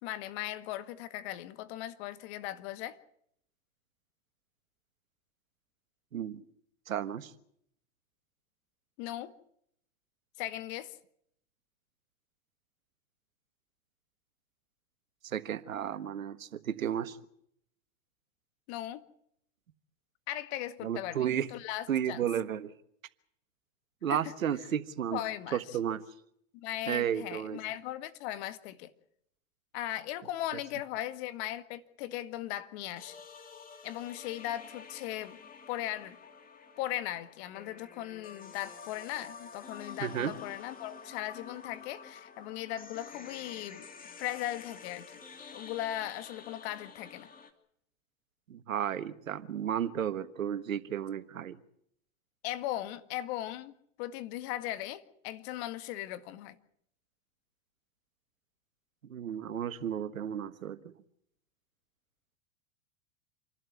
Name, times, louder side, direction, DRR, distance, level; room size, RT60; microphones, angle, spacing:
voice 1, 0.0-3.0 9.0-9.3 10.4-10.9 18.7-19.0 20.3-22.3 24.1-24.3 25.1-25.6 26.5-28.9 29.7-33.2 33.8-35.4 35.7-36.2 36.8-43.9 44.2-45.2 45.5-47.3 52.4-56.6, left 13 dB, 55° left, 1.9 m, -38 dB
voice 2, 6.9-7.3 15.2-17.2 20.8-21.5 21.9-22.7 24.0-25.2 25.5-26.0 26.9-27.6 40.0-40.3 48.5-51.6 59.0-60.9, right 9 dB, 90° right, 1.5 m, -33 dB
sound 1, 33.0-47.5, left 5 dB, 20° left, 2.8 m, -49 dB
28.0 x 12.5 x 9.6 m
hypercardioid pair, 115°, 39 cm